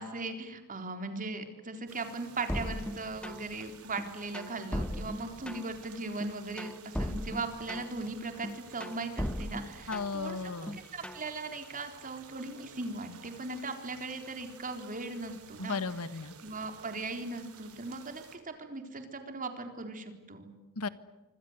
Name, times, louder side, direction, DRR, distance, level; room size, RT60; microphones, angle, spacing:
voice 1, 0.0-10.4 10.7-15.8 16.4-20.5, right 3 dB, 40° right, 6 dB, 3.9 m, -38 dB
sound 1, 1.9-18.4, right 6 dB, 70° right, 4.2 m, -53 dB
sound 2, 2.5-3.6 4.0-5.9 6.2-8.1 8.4-10.3 10.7-11.3, equal, 5° left, 1.0 m, -37 dB
voice 2, 9.9-10.8 15.6-16.3 20.8-20.9, left 4 dB, 75° left, 13 dB, 1.5 m, -35 dB
26.5 x 25.5 x 8.1 m, 1.2 s
head